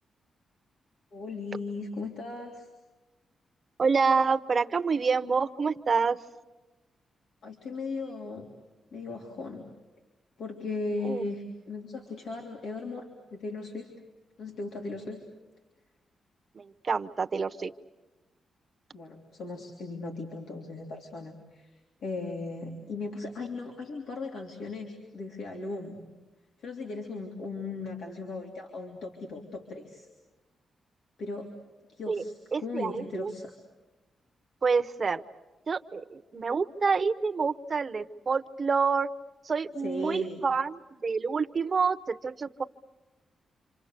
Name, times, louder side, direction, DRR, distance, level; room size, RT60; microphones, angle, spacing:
voice 1, 1.1-2.7 7.4-8.5 8.9-9.7 10.4-13.9 14.4-15.2 18.9-26.0 26.6-30.1 31.2-31.5 31.9-33.5 39.8-40.5, left 3 dB, 80° left, 0 dB, 3.3 m, -37 dB
voice 2, 3.8-6.2 11.0-11.2 16.5-17.7 32.1-32.2 32.5-33.3 34.6-35.2 35.7-39.1 39.4-42.6, right 5 dB, 35° right, 9 dB, 0.9 m, -27 dB
28.5 x 26.5 x 6.7 m, 1.1 s
wide cardioid pair, 135°, 0 cm